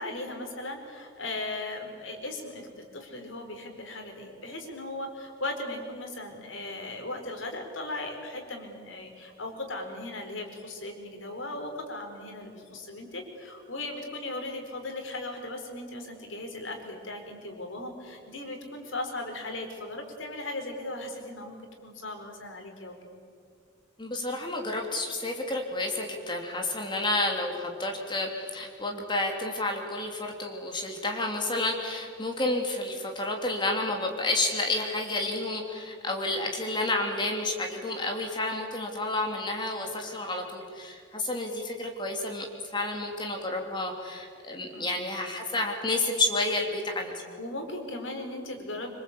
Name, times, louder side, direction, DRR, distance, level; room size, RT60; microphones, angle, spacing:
voice 1, 0.0-21.6 21.8-23.2 44.7-45.0 47.4-48.9, left 2 dB, 80° left, 3 dB, 4.6 m, -37 dB
voice 2, 24.0-42.5 42.7-47.2, left 2 dB, 25° left, 2 dB, 3.0 m, -30 dB
26.0 x 25.5 x 8.5 m, 2.2 s
head